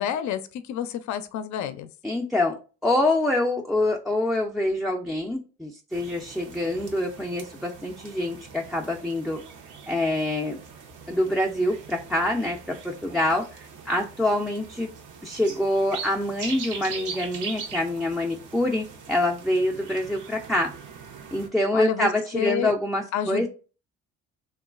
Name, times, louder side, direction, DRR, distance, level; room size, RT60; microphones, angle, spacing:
voice 1, 0.0-1.9 21.7-22.7 23.1-23.5, left 9 dB, 70° left, 0.4 m, -29 dB
voice 2, 2.0-2.6 2.8-9.4 9.9-10.6 11.1-12.6 12.8-14.9 15.2-20.7 21.3-23.5, left 1 dB, ahead, 0.3 m, -25 dB
sound 1, 5.9-21.5, right 5 dB, 90° right, 0.7 m, -41 dB
2.9 x 2.3 x 2.4 m
cardioid pair, 90°, 30 cm